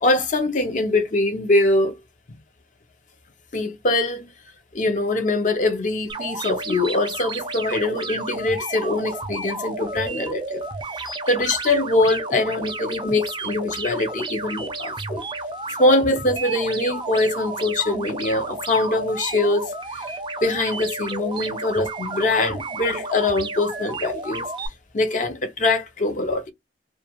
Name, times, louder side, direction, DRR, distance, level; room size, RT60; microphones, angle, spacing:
voice 1, 0.0-2.0 3.5-4.3 4.7-10.6 11.3-15.2 15.8-20.1 20.4-24.5 24.9-26.5, left 2 dB, 45° left, 0.6 m, -23 dB
sound 1, 6.1-24.7, right 3 dB, 25° right, 0.4 m, -32 dB
2.4 x 2.3 x 2.9 m
head